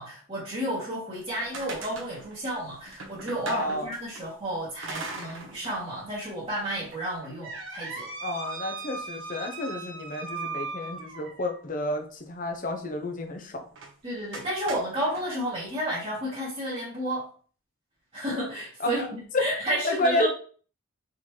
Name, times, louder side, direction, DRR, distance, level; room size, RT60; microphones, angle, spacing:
voice 1, 0.0-8.1 14.0-17.3 18.1-20.3, right 1 dB, 30° right, -9 dB, 1.4 m, -32 dB
sound 1, 1.1-4.2 4.8-5.8 6.2-6.3 6.9-11.6 13.7-13.9 14.3-15.2, right 3 dB, 65° right, 1.0 m, -38 dB
voice 2, 3.4-3.9 8.2-13.7 18.8-19.1 19.3-19.5 19.8-20.3, left 2 dB, 40° left, 5 dB, 0.7 m, -30 dB
4.1 x 3.7 x 3.1 m, 0.42 s
head